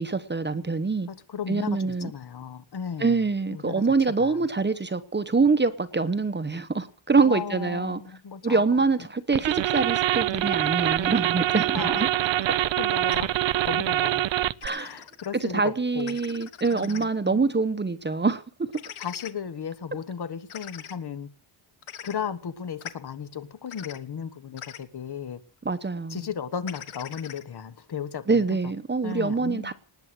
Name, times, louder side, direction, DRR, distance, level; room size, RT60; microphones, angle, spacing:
voice 1, 0.0-1.1 1.5-2.1 3.0-8.0 8.4-12.1 14.6-15.0 15.4-18.7 25.6-26.2 28.3-29.7, right 4 dB, 20° right, 1.0 m, -25 dB
voice 2, 1.1-3.2 3.5-3.8 4.2-4.4 7.2-8.8 11.7-12.1 12.8-13.3 13.7-14.3 14.8-16.2 16.7-17.4 19.0-21.3 22.0-25.4 26.1-28.6 29.0-29.7, left 7 dB, 50° left, 1.4 m, -35 dB
sound 1, 9.3-14.7, right 14 dB, 65° right, 0.6 m, -25 dB
sound 2, 13.1-13.2 14.6-15.3 16.0-17.1 18.7-19.3 20.5-20.9 21.8-22.1 22.8-22.9 23.7-24.0 24.6-24.8 26.7-27.4, left 10 dB, 75° left, 1.3 m, -41 dB
19.0 x 8.0 x 7.8 m
wide cardioid pair, 155°, 50 cm